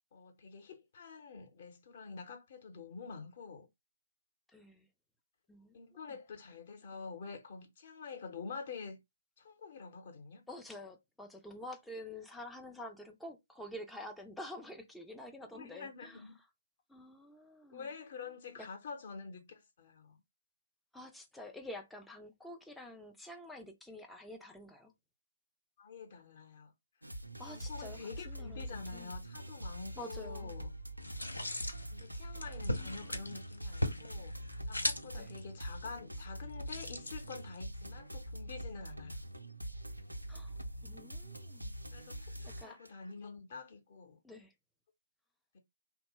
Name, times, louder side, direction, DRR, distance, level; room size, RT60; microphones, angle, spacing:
voice 1, 0.1-3.7 5.7-9.0 9.4-10.4 15.5-16.3 17.7-20.2 25.8-26.7 27.4-30.7 31.9-39.2 41.9-44.2 45.5-45.6, left 5 dB, 40° left, 0.8 m, -47 dB
voice 2, 4.5-4.9 5.5-5.8 6.1-6.2 10.5-16.2 16.9-17.9 18.6-18.7 20.9-24.9 27.4-29.2 30.0-30.6 32.7-33.4 35.1-35.3 40.3-40.5 40.8-41.7 42.5-42.8 44.2-44.5, left 1 dB, 5° left, 0.4 m, -48 dB
sound 1, 27.0-43.1, equal, 90° right, 0.5 m, -44 dB
sound 2, 31.0-37.8, left 1 dB, 80° left, 0.6 m, -40 dB
2.7 x 2.1 x 3.1 m
figure-of-eight pair, 135°, 0 cm